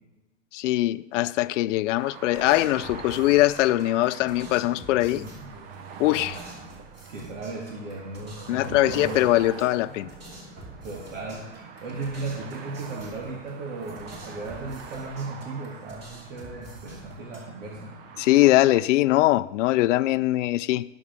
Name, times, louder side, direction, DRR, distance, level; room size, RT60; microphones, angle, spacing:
voice 1, 0.5-5.2 6.0-6.4 8.5-10.1 18.2-20.8, left 16 dB, 70° left, 0.5 m, -22 dB
sound 1, 1.9-18.8, right 6 dB, 50° right, 1.1 m, -43 dB
sound 2, 2.3-17.8, right 1 dB, 25° right, 2.9 m, -47 dB
voice 2, 5.1-5.5 6.3-6.5 7.1-9.2 9.8-9.9 10.8-11.4 11.8-17.9, right 3 dB, 75° right, 2.7 m, -36 dB
21.5 x 7.1 x 3.6 m
supercardioid pair, 150°, 38 cm